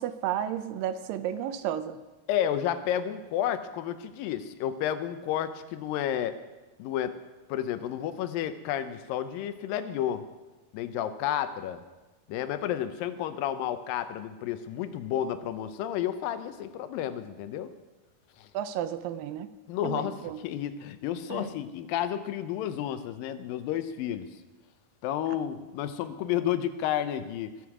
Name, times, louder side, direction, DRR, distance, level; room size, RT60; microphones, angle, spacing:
voice 1, 0.0-2.0 18.5-19.5 19.8-20.4 21.3-21.5, right 10 dB, 80° right, 12 dB, 2.2 m, -32 dB
voice 2, 2.3-6.4 6.8-7.2 7.5-10.3 10.7-11.8 12.3-17.7 18.4-18.5 19.7-24.3 25.0-27.5, left 10 dB, 80° left, 11 dB, 2.4 m, -31 dB
20.0 x 8.1 x 4.8 m, 1.2 s
omnidirectional pair, 4.2 m